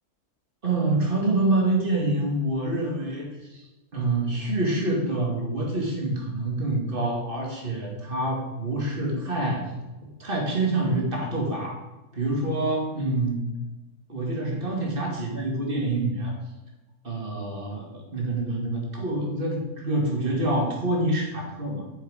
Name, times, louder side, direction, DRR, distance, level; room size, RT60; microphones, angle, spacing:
voice 1, 0.6-3.6 3.9-9.6 10.2-11.8 12.1-13.5 14.1-16.3 17.0-21.8, right 2 dB, 35° right, -1 dB, 2.3 m, -26 dB
8.8 x 6.4 x 5.1 m, 1.1 s
omnidirectional pair, 1.7 m